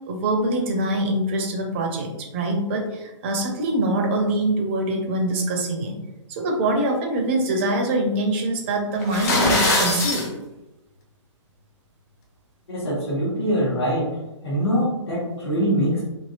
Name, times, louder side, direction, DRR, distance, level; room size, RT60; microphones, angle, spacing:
voice 1, 0.1-5.9 6.3-10.3, right 1 dB, 25° right, 2 dB, 0.4 m, -24 dB
sound 1, 9.0-10.3, left 2 dB, 30° left, 0.6 m, -21 dB
voice 2, 12.7-14.2 14.4-16.0, equal, 55° left, -8 dB, 1.1 m, -23 dB
2.7 x 2.7 x 2.7 m, 1.0 s
figure-of-eight pair, 125°, 16 cm